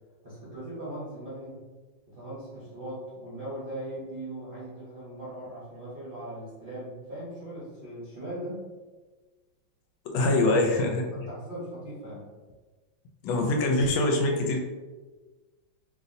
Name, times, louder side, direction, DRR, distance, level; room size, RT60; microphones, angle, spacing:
voice 1, 0.2-1.6 2.1-8.6 10.2-10.3 11.3-12.3, right 1 dB, 45° right, -10 dB, 0.7 m, -39 dB
voice 2, 10.1-11.3 13.2-14.6, left 2 dB, 80° left, 2 dB, 1.3 m, -24 dB
3.0 x 2.7 x 2.6 m, 1.3 s
omnidirectional pair, 2.2 m